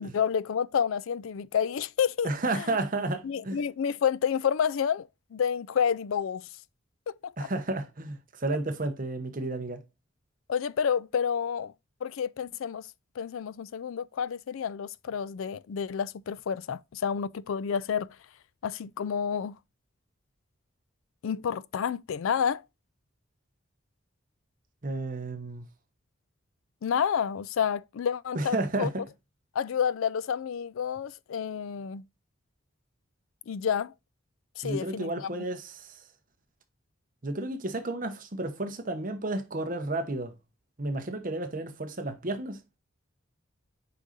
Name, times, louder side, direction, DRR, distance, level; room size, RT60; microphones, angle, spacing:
voice 1, 0.0-2.3 2.6-2.7 3.2-6.5 7.1-7.3 10.5-11.7 12.0-12.9 13.2-18.1 18.6-19.5 21.2-22.6 26.8-28.9 29.6-32.0 33.5-33.9 34.6-35.3, left 7 dB, 80° left, 0.4 m, -29 dB
voice 2, 2.2-3.6 7.4-9.8 24.8-25.7 28.3-29.0 34.6-36.0 37.2-40.3 40.8-42.6, right 2 dB, 40° right, 1.0 m, -32 dB
8.1 x 5.1 x 2.6 m
head